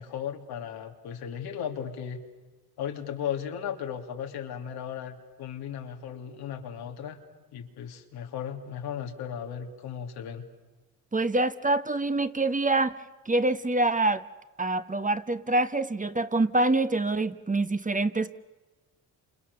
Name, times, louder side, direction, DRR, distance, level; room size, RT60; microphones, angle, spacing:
voice 1, 0.0-2.2 2.8-7.2 7.5-10.5, left 8 dB, 90° left, 3 dB, 3.1 m, -36 dB
voice 2, 11.1-13.0 13.2-14.2 14.6-18.4, right 2 dB, 20° right, 11 dB, 1.4 m, -25 dB
29.5 x 28.0 x 7.0 m, 1.2 s
cardioid pair, 70°, 37 cm